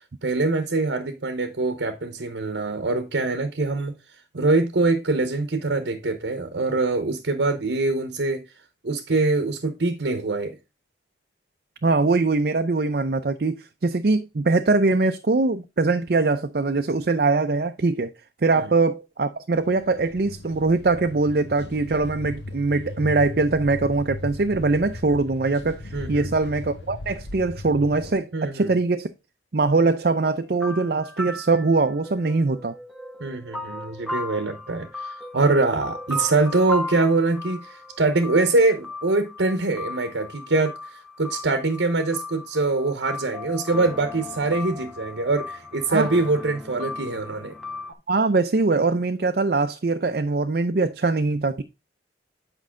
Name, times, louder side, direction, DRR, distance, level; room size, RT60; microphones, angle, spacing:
voice 1, 0.0-8.5 8.8-10.6 18.5-18.7 25.9-26.3 28.3-28.7 33.2-47.5, right 3 dB, 80° right, 0.9 m, -24 dB
voice 2, 11.8-18.1 18.4-29.1 29.5-32.8 45.9-46.1 48.1-51.6, right 3 dB, 55° right, 0.5 m, -22 dB
sound 1, 19.6-28.1, left 2 dB, 80° left, 1.0 m, -37 dB
sound 2, 30.2-47.9, left 1 dB, ahead, 1.0 m, -36 dB
8.4 x 5.4 x 3.7 m
head